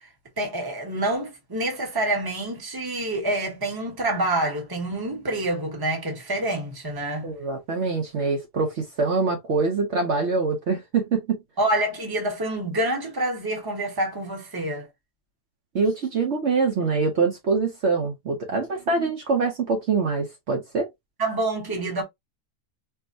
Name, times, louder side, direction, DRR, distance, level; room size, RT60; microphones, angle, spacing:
voice 1, 0.4-7.3 11.6-14.9 21.2-22.0, right 1 dB, 20° right, 0.9 m, -27 dB
voice 2, 7.2-11.4 15.7-20.9, right 4 dB, 60° right, 1.0 m, -24 dB
4.5 x 2.0 x 2.5 m
omnidirectional pair, 1.5 m